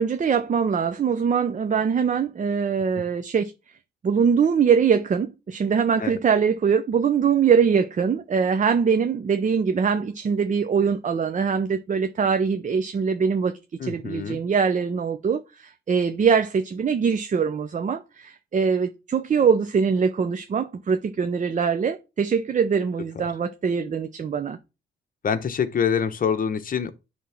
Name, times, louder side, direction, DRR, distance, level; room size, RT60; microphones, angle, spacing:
voice 1, 0.0-3.5 4.0-13.5 13.8-24.6, right 6 dB, 40° right, 0.8 m, -22 dB
voice 2, 13.8-14.4 25.2-26.9, left 7 dB, 45° left, 1.2 m, -25 dB
10.5 x 3.6 x 5.9 m
cardioid pair, 90°, 20 cm